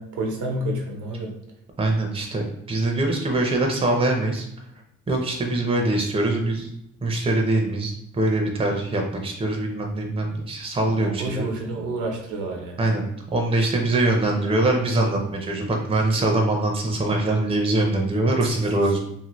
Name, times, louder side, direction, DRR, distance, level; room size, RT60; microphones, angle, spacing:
voice 1, 0.0-1.4 10.8-12.8 18.4-18.7, right 1 dB, 80° right, 1 dB, 0.8 m, -30 dB
voice 2, 1.8-4.4 5.1-6.7 7.0-11.4 12.8-13.1 13.3-19.0, right 2 dB, 20° right, 1 dB, 0.6 m, -23 dB
2.7 x 2.7 x 3.0 m, 0.77 s
cardioid pair, 90°, 30 cm